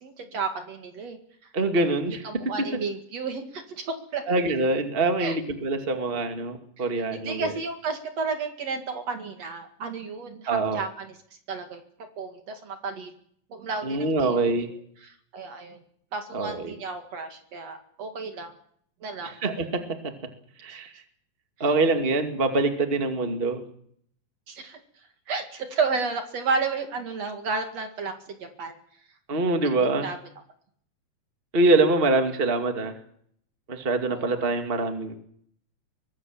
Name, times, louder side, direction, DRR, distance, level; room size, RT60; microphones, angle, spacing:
voice 1, 0.0-1.2 2.2-4.2 5.2-5.3 6.8-6.9 7.1-11.1 11.5-11.8 12.2-13.1 13.5-14.4 15.0-15.8 16.1-18.5 19.0-19.3 21.6-21.7 24.5-24.8 25.3-28.7 30.0-30.2 34.1-34.3, right 4 dB, 55° right, 6 dB, 3.0 m, -32 dB
voice 2, 1.5-2.7 4.3-7.5 10.5-10.8 13.8-14.7 16.3-16.7 19.2-20.1 20.6-20.9 21.6-23.6 29.3-30.1 31.5-32.9 33.7-35.1, right 2 dB, 20° right, 6 dB, 2.0 m, -24 dB
23.5 x 19.0 x 7.4 m, 0.65 s
omnidirectional pair, 3.7 m